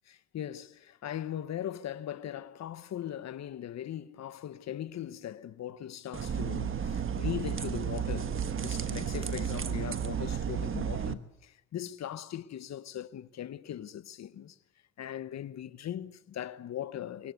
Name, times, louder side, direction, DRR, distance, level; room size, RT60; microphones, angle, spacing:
voice 1, 0.3-14.6 15.0-17.3, left 11 dB, 60° left, 1.2 m, -39 dB
sound 1, 6.1-11.1, right 8 dB, 45° right, 1.4 m, -32 dB
24.5 x 21.0 x 8.3 m
cardioid pair, 90°, 30 cm